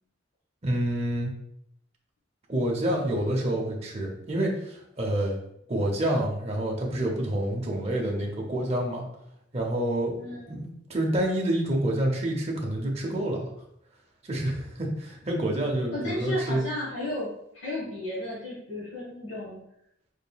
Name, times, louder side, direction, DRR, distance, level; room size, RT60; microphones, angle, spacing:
voice 1, 0.6-1.3 2.5-5.4 5.7-9.0 9.5-10.1 10.5-13.5 14.3-16.6, right 1 dB, 35° right, -1 dB, 0.6 m, -28 dB
voice 2, 15.9-19.6, left 1 dB, 65° left, -7 dB, 1.1 m, -33 dB
3.7 x 3.3 x 2.2 m, 0.74 s
head